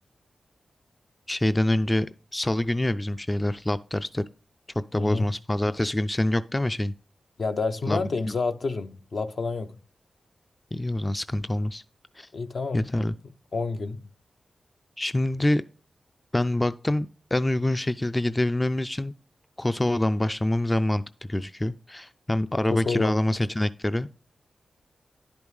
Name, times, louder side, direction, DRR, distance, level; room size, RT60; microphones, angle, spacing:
voice 1, 1.3-2.1 2.3-4.2 4.9-6.9 7.9-8.0 8.3-8.4 10.7-11.8 12.2-12.3 12.7-13.1 15.0-15.6 16.3-19.1 19.6-24.2, left 1 dB, 20° left, 0.3 m, -26 dB
voice 2, 5.0-5.3 7.4-9.8 12.3-12.9 13.5-14.1 22.6-23.2, left 4 dB, 65° left, 0.7 m, -29 dB
10.5 x 5.2 x 3.2 m
cardioid pair, 65°, 0 cm